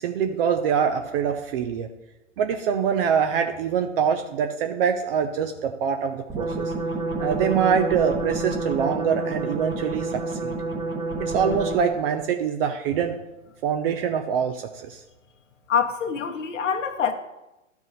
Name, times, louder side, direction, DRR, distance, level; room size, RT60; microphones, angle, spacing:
voice 1, 0.0-1.9 2.4-6.7 7.2-10.6 11.2-13.2 13.6-15.0, right 7 dB, 50° right, 6 dB, 0.7 m, -24 dB
sound 1, 6.3-12.1, right 3 dB, 15° right, 1.2 m, -29 dB
voice 2, 15.7-17.1, left 7 dB, 75° left, 6 dB, 1.1 m, -25 dB
12.0 x 4.8 x 4.0 m, 0.97 s
hypercardioid pair, 115°, 38 cm